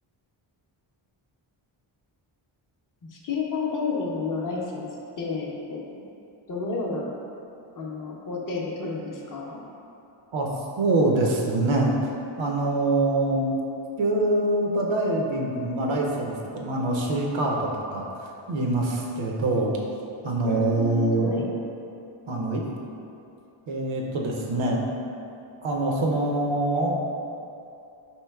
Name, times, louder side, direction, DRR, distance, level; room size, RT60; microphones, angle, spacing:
voice 1, 3.1-4.9 5.2-6.0 6.5-7.1 7.8-9.6 20.4-21.5, left 4 dB, 40° left, -2 dB, 0.6 m, -31 dB
voice 2, 10.8-11.9 12.4-13.5 14.0-18.1 18.5-19.7 20.2-21.3 22.3-22.7 23.7-24.8 25.6-27.0, right 2 dB, 70° right, -1 dB, 0.7 m, -24 dB
4.5 x 3.0 x 2.2 m, 2.7 s
cardioid pair, 75°, 49 cm